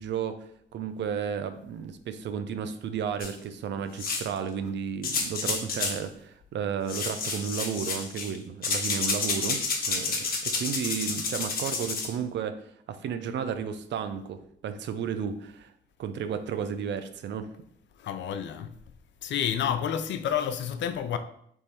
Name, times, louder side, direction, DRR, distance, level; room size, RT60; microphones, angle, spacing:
voice 1, 0.0-15.7 16.0-17.5, right 7 dB, 65° right, 0.5 m, -33 dB
sound 1, 3.2-3.3 4.0-4.4 5.0-6.0 6.9-8.4 8.6-12.1, left 4 dB, 45° left, 1.1 m, -30 dB
voice 2, 18.0-18.8 19.2-21.2, left 9 dB, 65° left, 0.5 m, -29 dB
3.6 x 3.1 x 4.3 m
cardioid pair, 90°, 20 cm